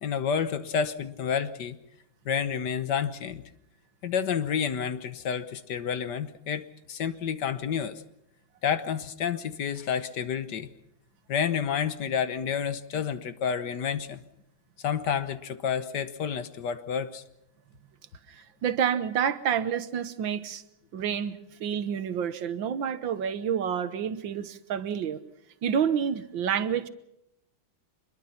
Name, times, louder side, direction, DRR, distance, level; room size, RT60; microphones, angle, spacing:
voice 1, 0.0-1.8 2.2-3.4 4.0-8.0 8.6-10.7 11.3-14.2 14.8-17.2, left 7 dB, 60° left, 1.6 m, -29 dB
voice 2, 18.3-20.6 20.9-25.2 25.6-26.9, right 8 dB, 75° right, 1.8 m, -29 dB
25.0 x 22.0 x 5.8 m
omnidirectional pair, 2.2 m